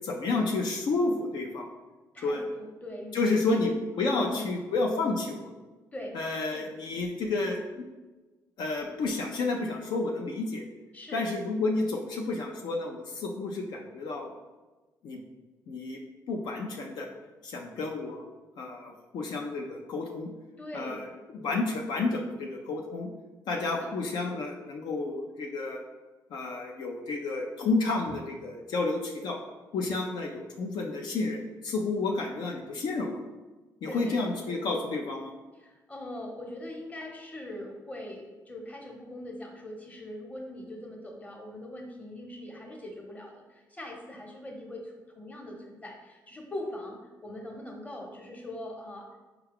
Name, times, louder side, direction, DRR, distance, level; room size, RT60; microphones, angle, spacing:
voice 1, 0.0-1.7 2.2-2.4 3.1-3.7 4.0-5.5 6.1-7.8 8.6-10.6 11.1-14.3 15.0-15.2 15.7-16.0 16.3-17.1 17.4-20.3 20.7-21.1 21.3-23.1 23.5-25.8 26.3-29.4 29.7-33.2 33.8-35.3, left 3 dB, 70° left, 1 dB, 0.4 m, -30 dB
voice 2, 2.1-3.2 3.5-3.7 4.1-4.6 5.9-6.2 10.9-11.2 20.6-21.1 23.7-23.9 28.1-28.2 33.9-34.2 35.6-49.1, left 1 dB, 20° left, 1 dB, 0.9 m, -41 dB
4.7 x 2.3 x 3.4 m, 1.2 s
supercardioid pair, 65°, 8 cm